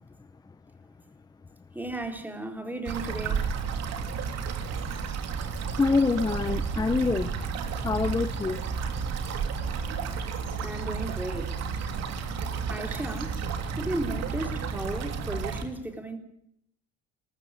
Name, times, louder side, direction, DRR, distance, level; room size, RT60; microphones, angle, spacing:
voice 1, 1.7-3.5 10.6-11.6 12.7-13.4 13.8-16.2, right 1 dB, 5° right, 5 dB, 3.7 m, -35 dB
sound 1, 2.9-15.6, right 6 dB, 60° right, 3.1 m, -32 dB
voice 2, 5.8-7.3 7.8-8.6, left 4 dB, 15° left, 14 dB, 0.7 m, -25 dB
19.5 x 15.0 x 9.6 m, 0.74 s
supercardioid pair, 90°, 29 cm